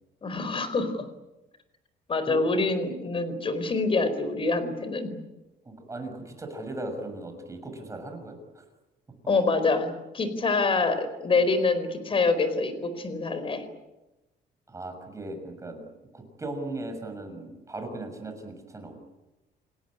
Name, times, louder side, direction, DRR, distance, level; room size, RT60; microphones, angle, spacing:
voice 1, 0.2-1.1 2.1-5.2 9.3-13.7, left 3 dB, 30° left, 11 dB, 4.4 m, -26 dB
voice 2, 5.6-8.6 14.7-15.9 16.1-19.0, right 2 dB, 15° right, 5 dB, 6.4 m, -38 dB
29.0 x 18.5 x 9.9 m, 1.0 s
cardioid pair, 150°, 18 cm